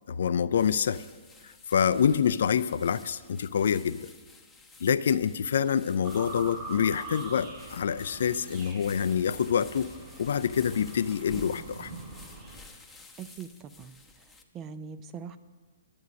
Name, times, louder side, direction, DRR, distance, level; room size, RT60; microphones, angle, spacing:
voice 1, 0.1-1.0 1.4-4.1 4.8-9.9 10.2-11.9, left 7 dB, 65° left, 15 dB, 0.4 m, -26 dB
sound 1, 0.6-14.4, left 3 dB, 5° left, 0.9 m, -52 dB
sound 2, 6.0-12.5, right 3 dB, 40° right, 4.2 m, -43 dB
voice 2, 13.2-14.0 14.5-15.4, right 6 dB, 25° right, 12 dB, 0.6 m, -41 dB
11.5 x 7.9 x 6.3 m, 1.4 s
figure-of-eight pair, 125°, 0 cm